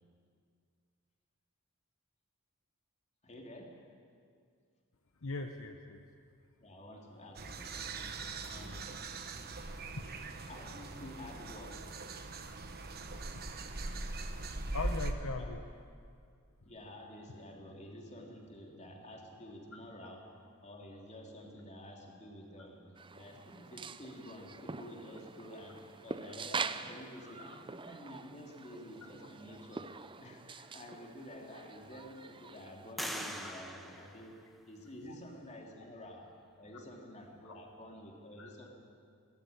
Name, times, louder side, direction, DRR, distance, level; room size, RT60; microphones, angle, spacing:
voice 1, 3.2-3.8 6.6-9.0 9.5-9.9 10.5-11.9 15.4-15.5 16.6-29.9 30.2-34.4 34.7-36.3 36.6-38.7, left 1 dB, 30° left, 1 dB, 2.9 m, -50 dB
voice 2, 5.2-6.0 10.9-11.1 14.7-15.6 37.4-37.5 38.4-38.5, left 3 dB, 65° left, 5 dB, 1.0 m, -40 dB
sound 1, 7.4-15.1, right 2 dB, 45° right, 1.3 m, -41 dB
sound 2, 23.0-32.9, right 4 dB, 25° right, 0.6 m, -44 dB
sound 3, 30.7-30.8 31.4-32.1 33.0-34.9, equal, ahead, 1.2 m, -43 dB
18.0 x 14.5 x 10.0 m, 2.2 s
head